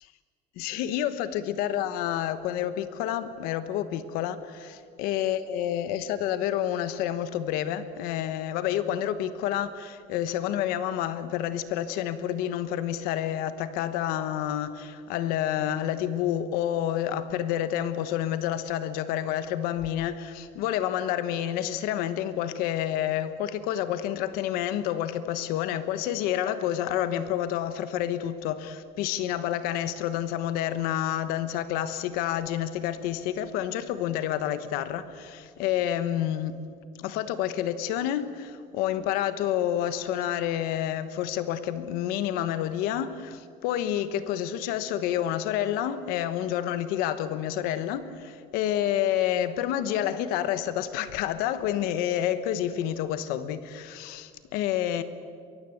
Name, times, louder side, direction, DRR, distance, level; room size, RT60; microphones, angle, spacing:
voice 1, 0.6-36.6 37.0-55.0, left 11 dB, 65° left, 12 dB, 1.2 m, -29 dB
23.5 x 22.5 x 7.9 m, 2.2 s
cardioid pair, 175°, 17 cm